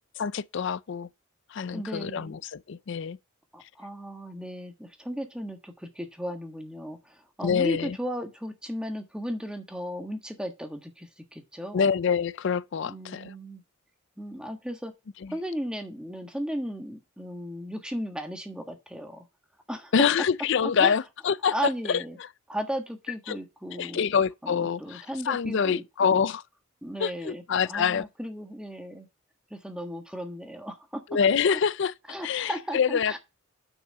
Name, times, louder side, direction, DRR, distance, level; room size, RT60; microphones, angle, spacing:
voice 1, 0.2-1.1 1.5-3.2 7.4-8.0 11.7-13.3 15.2-15.4 19.9-22.3 23.3-23.4 23.8-26.4 27.0-28.1 31.1-33.2, left 6 dB, 60° left, 0.4 m, -26 dB
voice 2, 1.7-2.4 3.5-11.9 12.9-13.6 14.2-14.9 15.3-19.2 19.7-19.9 20.6-20.9 21.5-22.2 22.5-24.1 24.4-26.3 26.8-29.1 29.5-31.0 32.1-33.2, equal, 5° right, 1.3 m, -36 dB
6.3 x 6.1 x 5.5 m
head